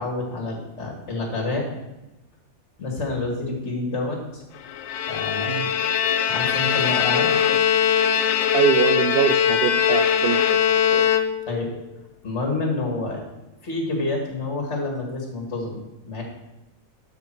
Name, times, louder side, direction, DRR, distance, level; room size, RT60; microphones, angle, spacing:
voice 1, 0.0-1.7 2.8-4.4 5.1-5.5 6.3-7.3 11.5-11.7 12.2-13.2 13.6-15.8 16.1-16.2, left 2 dB, 50° left, 0 dB, 2.3 m, -28 dB
Bowed string instrument, 4.7-11.7, left 9 dB, 70° left, 0.9 m, -21 dB
voice 2, 8.5-11.1, right 8 dB, 70° right, 8 dB, 0.5 m, -24 dB
12.0 x 5.6 x 4.6 m, 0.97 s
omnidirectional pair, 1.5 m